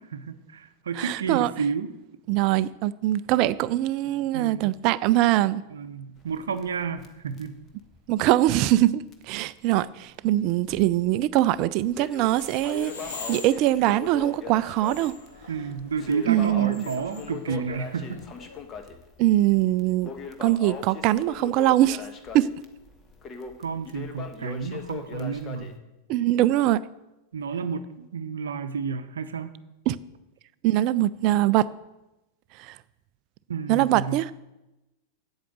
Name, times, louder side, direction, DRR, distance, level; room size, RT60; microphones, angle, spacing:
voice 1, 0.0-1.9 4.3-4.7 5.7-7.6 15.5-18.2 23.6-25.8 27.3-29.5 33.5-34.2, right 5 dB, 65° right, 0.7 m, -31 dB
voice 2, 1.0-1.5 2.3-5.6 8.1-15.1 16.3-16.8 19.2-20.1 20.4-22.0 22.3-22.5 26.1-26.8 29.9-30.0 30.6-31.7 32.6-32.8 33.7-34.3, right 14 dB, 40° right, 0.4 m, -22 dB
Crackle, 6.2-8.9 9.1-9.2 9.7-9.8 10.5-11.1 11.5-25.8, left 5 dB, 25° left, 1.3 m, -40 dB
sound 1, 12.1-18.6, left 4 dB, 60° left, 2.3 m, -44 dB
8.4 x 8.1 x 7.5 m
figure-of-eight pair, 90°, 0 cm